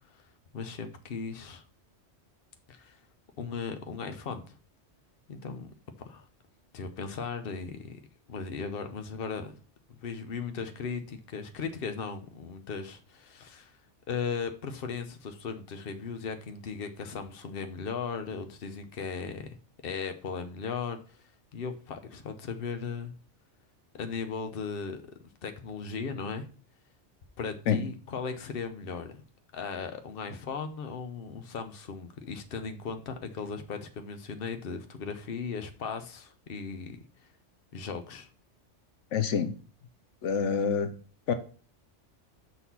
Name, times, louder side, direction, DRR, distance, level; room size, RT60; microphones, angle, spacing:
voice 1, 0.5-1.6 2.7-3.0 3.4-4.4 5.3-6.3 6.7-8.0 8.3-9.5 9.9-13.8 14.1-19.5 19.8-21.2 21.5-23.1 23.9-25.0 25.4-26.4 27.4-29.2 29.5-37.0 37.7-38.3, left 5 dB, 55° left, 8 dB, 1.0 m, -37 dB
voice 2, 39.1-39.5 40.2-40.9 41.3-41.4, left 6 dB, 80° left, 10 dB, 1.0 m, -27 dB
6.4 x 4.1 x 5.6 m, 0.40 s
omnidirectional pair, 1.2 m